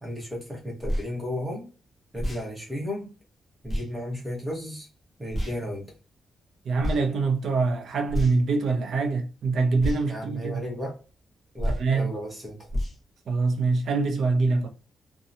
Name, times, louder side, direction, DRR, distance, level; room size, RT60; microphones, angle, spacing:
voice 1, 0.0-1.7 2.1-3.1 3.6-4.9 5.2-5.8 10.1-11.0 11.5-12.7, left 1 dB, 10° right, 1.0 m, -34 dB
sound 1, 0.8-1.1 2.1-2.5 3.7-3.9 5.3-5.6 6.8-7.0 8.1-8.5 9.8-10.0 11.6-11.9 12.7-13.0, equal, 10° left, 0.8 m, -28 dB
voice 2, 6.6-10.6 11.7-12.1 13.3-14.7, right 4 dB, 60° right, 0.6 m, -24 dB
2.7 x 2.2 x 2.5 m
wide cardioid pair, 155°, 0 cm